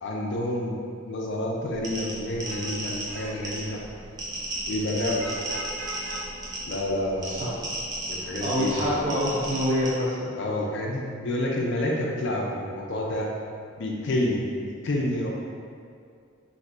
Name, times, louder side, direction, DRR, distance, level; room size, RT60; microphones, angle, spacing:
voice 1, 0.0-0.8 1.1-3.8 4.7-5.3 6.7-7.5 8.1-8.9 10.4-13.3 13.8-15.3, left 1 dB, 55° left, -2 dB, 0.4 m, -29 dB
sound 1, 1.7-9.9, right 1 dB, 20° right, 0.4 m, -35 dB
Vehicle horn car horn honking / Traffic noise roadway noise, 2.2-7.5, right 1 dB, 90° right, 0.6 m, -42 dB
voice 2, 7.2-7.6 8.1-10.3, equal, 35° right, -9 dB, 0.8 m, -27 dB
2.6 x 2.2 x 3.7 m, 2.3 s
head